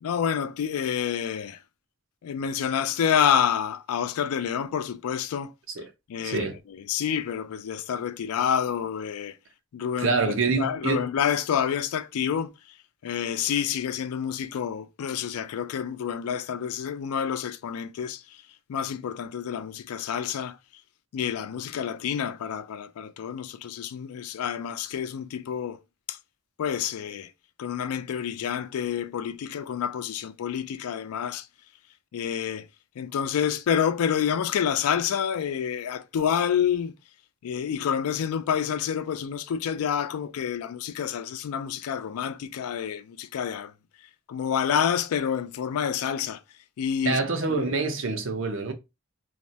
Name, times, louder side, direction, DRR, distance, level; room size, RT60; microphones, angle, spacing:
voice 1, 0.0-1.6 2.2-5.5 6.1-9.4 9.7-12.5 13.0-18.4 18.7-20.6 21.1-25.8 26.1-26.2 26.6-27.3 27.6-31.5 32.1-32.7 33.0-36.9 37.4-43.7 44.3-46.4 46.8-47.2 47.5-47.8, left 8 dB, 85° left, 0.3 m, -28 dB
voice 2, 6.2-6.5 10.0-11.1 47.0-48.7, right 4 dB, 60° right, 0.6 m, -26 dB
3.2 x 2.1 x 2.6 m
head